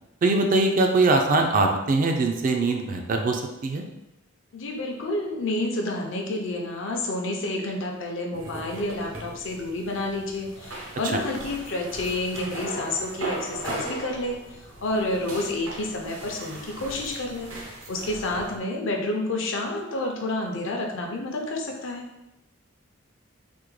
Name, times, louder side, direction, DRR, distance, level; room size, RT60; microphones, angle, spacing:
voice 1, 0.2-3.8 11.0-11.2, right 3 dB, 40° right, 3 dB, 0.3 m, -22 dB
voice 2, 4.5-14.4 14.8-17.5 17.9-22.1, left 2 dB, 65° left, 0 dB, 0.6 m, -29 dB
sound 1, 8.3-18.6, right 1 dB, 85° right, 0.7 m, -38 dB
3.5 x 2.1 x 3.1 m, 0.96 s
head